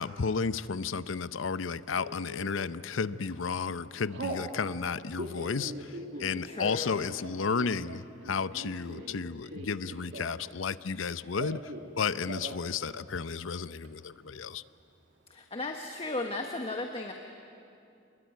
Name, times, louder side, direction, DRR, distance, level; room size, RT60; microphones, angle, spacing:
voice 1, 0.0-14.6, left 5 dB, 90° left, 15 dB, 0.7 m, -33 dB
Telephone, 2.0-2.5 3.1-3.3 3.6-4.5 5.0-10.5 10.8-11.9 12.2-12.6 12.9-13.0 13.3-13.9, right 1 dB, 65° right, 2.8 m, -42 dB
voice 2, 6.1-7.1 15.3-17.1, left 2 dB, 30° left, 3 dB, 1.4 m, -36 dB
28.5 x 22.0 x 9.4 m, 2.6 s
head